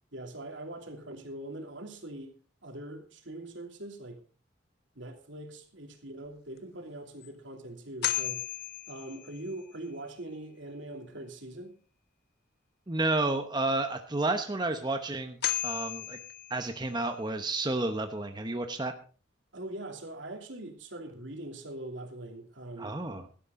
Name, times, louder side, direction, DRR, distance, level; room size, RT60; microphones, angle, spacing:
voice 1, 0.1-4.2 4.9-8.5 8.9-11.7 19.5-23.0, right 1 dB, 75° right, 2.9 m, -42 dB
sound 1, 6.6-6.7 7.2-7.3 8.0-9.6 14.7-14.8 15.4-17.1, left 12 dB, 55° left, 1.3 m, -34 dB
voice 2, 12.9-15.4 15.6-16.2 16.5-18.9 22.8-23.3, right 2 dB, 20° right, 0.9 m, -31 dB
16.5 x 12.5 x 3.8 m
head